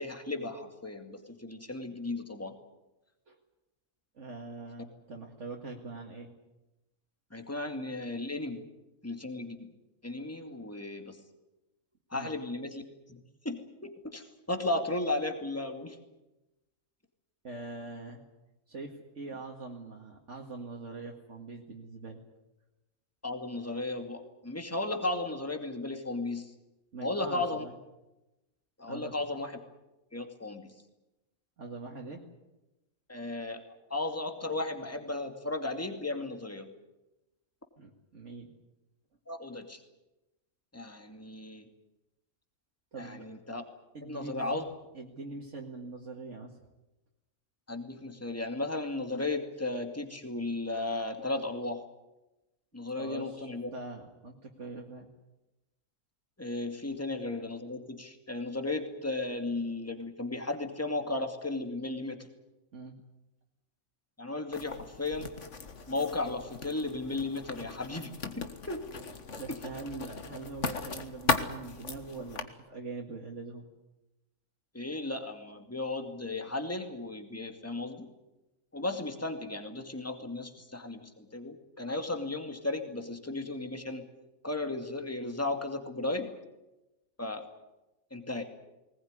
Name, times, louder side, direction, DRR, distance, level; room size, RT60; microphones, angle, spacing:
voice 1, 0.0-2.6 7.3-8.6 9.0-9.7 10.0-11.2 12.1-12.8 13.1-16.0 23.2-26.5 27.0-27.6 28.8-29.6 30.1-30.8 33.1-33.6 33.9-36.7 39.3-39.8 40.7-41.6 43.0-43.6 44.0-44.6 47.7-51.8 52.7-53.7 56.4-62.3 64.2-65.3 65.9-68.8 69.5-69.6 74.7-78.1 78.7-84.0 84.4-86.4 87.2-87.4 88.1-88.4, left 2 dB, 10° left, 5 dB, 2.3 m, -35 dB
voice 2, 4.1-6.3 12.1-12.3 17.4-18.2 18.7-22.2 26.9-27.7 28.9-29.3 31.6-32.2 37.8-38.5 42.9-43.3 43.9-44.6 44.9-46.6 53.0-55.1 62.7-63.0 69.4-73.7, right 3 dB, 60° right, 0 dB, 2.3 m, -43 dB
Writing, 64.5-72.4, left 4 dB, 60° left, 1.9 m, -37 dB
20.0 x 20.0 x 9.7 m, 0.99 s
omnidirectional pair, 1.4 m